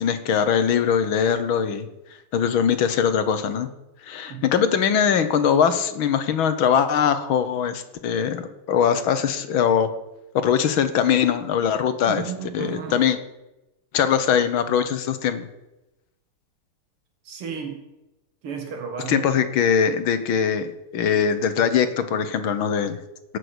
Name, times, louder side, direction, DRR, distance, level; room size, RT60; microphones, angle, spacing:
voice 1, 0.0-1.9 2.3-3.7 4.0-9.9 10.3-12.2 12.5-13.2 13.9-15.5 19.1-23.0, left 7 dB, 70° left, 10 dB, 1.8 m, -21 dB
voice 2, 12.1-13.1 17.2-17.8 18.4-19.3, right 7 dB, 85° right, 3 dB, 2.8 m, -33 dB
17.5 x 6.6 x 8.0 m, 0.97 s
omnidirectional pair, 2.4 m